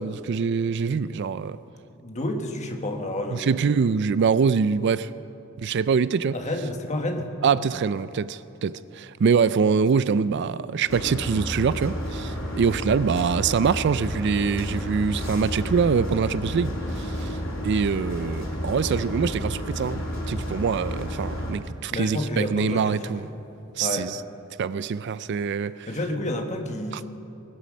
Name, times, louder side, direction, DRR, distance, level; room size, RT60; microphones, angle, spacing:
voice 1, 0.0-1.6 3.3-5.1 5.6-6.4 7.4-17.4 17.6-23.2 23.8-24.1 24.6-25.9, right 6 dB, 55° right, 0.4 m, -24 dB
voice 2, 1.9-3.5 6.3-7.3 21.9-23.3 23.8-24.2 25.9-27.0, left 1 dB, 35° left, 1.4 m, -30 dB
sound 1, 10.9-21.5, equal, 85° left, 3.8 m, -31 dB
20.0 x 10.0 x 6.3 m
head